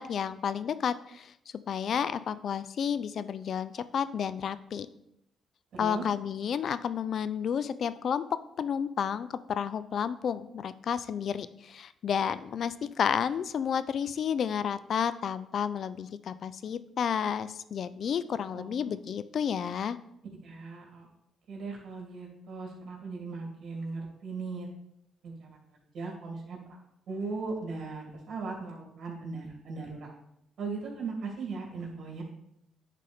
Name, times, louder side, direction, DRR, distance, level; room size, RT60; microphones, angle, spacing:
voice 1, 0.0-1.3 1.7-4.9 5.8-8.2 8.6-20.0, left 7 dB, 60° left, 15 dB, 0.4 m, -31 dB
voice 2, 5.7-6.0 18.5-18.9 20.4-21.1 21.5-24.7 25.2-25.5 25.9-26.6 27.1-30.1 30.6-32.2, right 4 dB, 60° right, -2 dB, 2.7 m, -38 dB
10.0 x 4.2 x 3.5 m, 0.79 s
cardioid pair, 90°, 0 cm